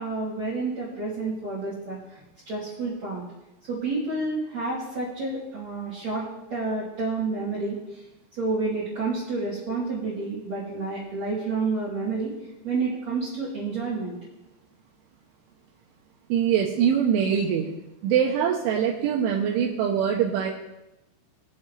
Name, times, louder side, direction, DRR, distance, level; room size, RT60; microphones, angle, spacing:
voice 1, 0.0-3.2 3.7-8.0 8.4-12.3 12.6-14.1, right 3 dB, 45° right, -9 dB, 3.0 m, -29 dB
voice 2, 16.3-17.7 18.0-20.5, right 8 dB, 80° right, 0 dB, 3.2 m, -23 dB
19.5 x 7.3 x 3.2 m, 0.92 s
omnidirectional pair, 5.6 m